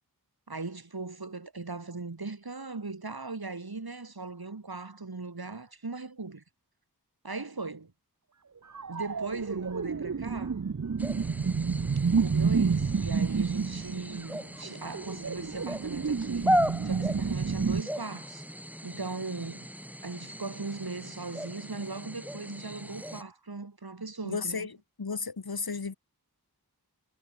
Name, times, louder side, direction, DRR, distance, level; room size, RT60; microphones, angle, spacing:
voice 1, 0.5-6.4 7.2-7.9 8.9-10.6 12.2-16.5 16.8-18.5 18.8-19.7 20.0-24.7, right 3 dB, 70° right, 7.1 m, -39 dB
sound 1, 8.7-17.8, right 5 dB, 50° right, 0.9 m, -29 dB
sound 2, 11.0-23.2, equal, 5° right, 6.8 m, -36 dB
voice 2, 24.2-25.9, left 4 dB, 70° left, 2.3 m, -34 dB
wide cardioid pair, 50°, 38 cm